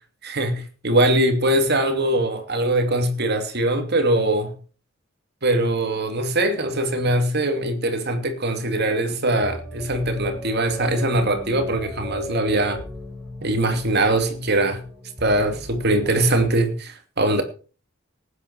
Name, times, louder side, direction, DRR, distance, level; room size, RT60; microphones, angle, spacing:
voice 1, 0.2-4.5 5.4-12.8 13.4-14.8 15.2-17.4, right 1 dB, 55° right, 2.9 m, -22 dB
sound 1, 9.4-16.5, left 1 dB, ahead, 5.4 m, -37 dB
18.5 x 9.8 x 4.9 m
head